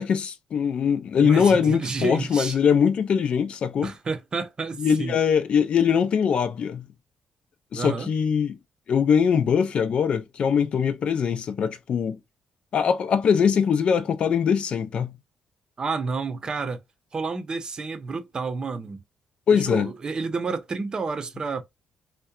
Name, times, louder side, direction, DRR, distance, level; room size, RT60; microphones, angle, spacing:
voice 1, 0.0-3.9 4.8-6.9 7.7-8.6 8.9-12.2 12.7-15.1 19.5-19.9, left 7 dB, 60° left, 0.4 m, -22 dB
voice 2, 1.2-2.6 3.8-5.2 7.7-8.1 15.8-16.8 17.1-19.0 19.5-21.6, right 4 dB, 45° right, 0.6 m, -30 dB
2.7 x 2.2 x 2.3 m
supercardioid pair, 60°, 2 cm